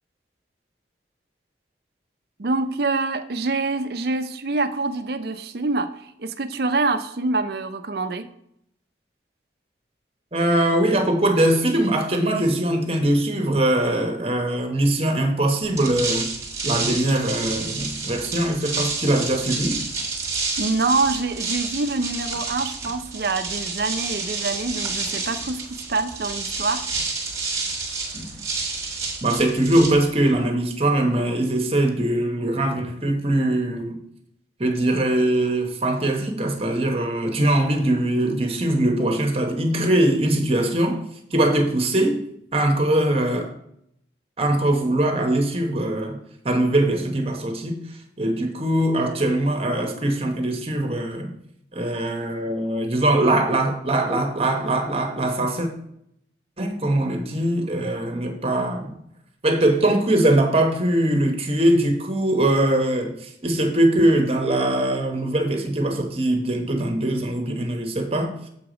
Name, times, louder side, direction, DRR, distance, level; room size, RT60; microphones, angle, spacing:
voice 1, 2.4-8.3 20.6-26.9, right 3 dB, 55° right, 0.6 m, -25 dB
voice 2, 10.3-16.3 16.6-19.8 28.1-28.3 29.2-34.0 34.6-41.0 41.3-42.2 42.5-43.5 44.4-46.2 46.4-51.3 51.7-55.7 56.6-58.9 59.4-68.5, right 1 dB, 30° right, 1.0 m, -22 dB
sound 1, 15.6-30.5, right 4 dB, 15° right, 1.5 m, -30 dB
7.2 x 4.8 x 5.1 m
head